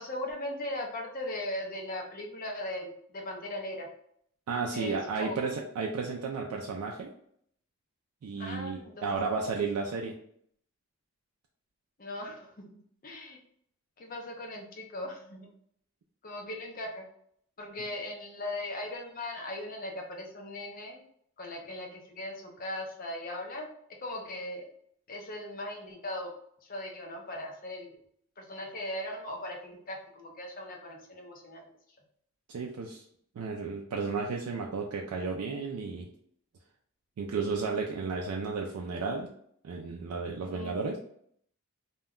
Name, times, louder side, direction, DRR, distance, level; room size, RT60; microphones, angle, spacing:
voice 1, 0.0-3.9 4.7-5.4 8.4-9.2 12.0-13.4 14.0-15.5 16.2-17.1 17.6-21.0 21.4-23.7 24.0-24.6 25.1-26.3 26.6-27.9 28.4-31.6 40.5-40.8, left 1 dB, 40° left, 0 dB, 0.5 m, -39 dB
voice 2, 4.5-7.1 8.2-10.2 32.5-33.0 33.4-36.1 37.2-39.3 39.6-41.0, right 4 dB, 90° right, 0 dB, 0.4 m, -33 dB
2.2 x 2.1 x 3.5 m, 0.67 s
head